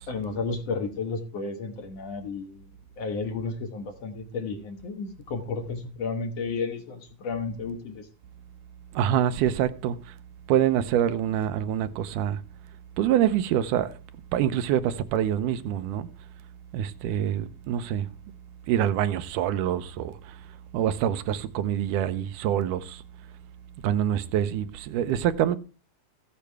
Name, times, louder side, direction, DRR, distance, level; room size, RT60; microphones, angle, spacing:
voice 1, 0.1-2.7 3.0-8.1, left 4 dB, 60° left, 2.1 m, -32 dB
voice 2, 8.9-10.0 10.5-12.4 13.0-13.9 14.3-16.1 16.7-18.1 18.7-20.1 20.7-23.0 23.8-25.6, right 10 dB, 80° right, 2.2 m, -25 dB
15.0 x 8.4 x 3.4 m
omnidirectional pair, 3.7 m